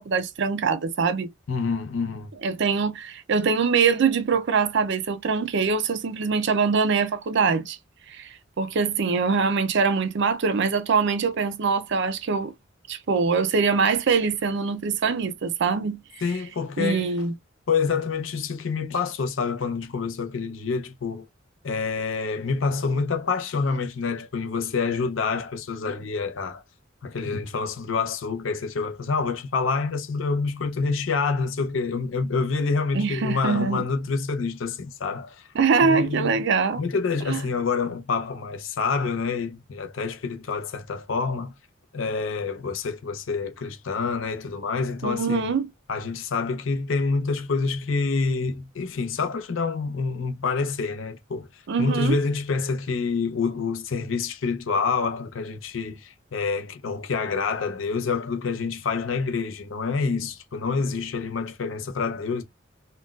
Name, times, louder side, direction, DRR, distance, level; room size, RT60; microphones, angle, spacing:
voice 1, 0.0-1.3 2.4-7.8 8.1-8.3 8.6-12.5 12.9-16.0 16.8-17.3 32.9-33.8 35.6-36.8 37.3-37.4 45.0-45.7 51.7-52.2, right 5 dB, 65° right, 0.5 m, -23 dB
voice 2, 1.5-2.3 16.2-17.1 17.7-21.3 21.6-26.6 27.0-35.5 35.8-36.4 36.8-41.5 41.9-45.5 45.9-51.5 51.8-62.4, left 4 dB, 80° left, 0.6 m, -27 dB
3.8 x 2.2 x 2.3 m
head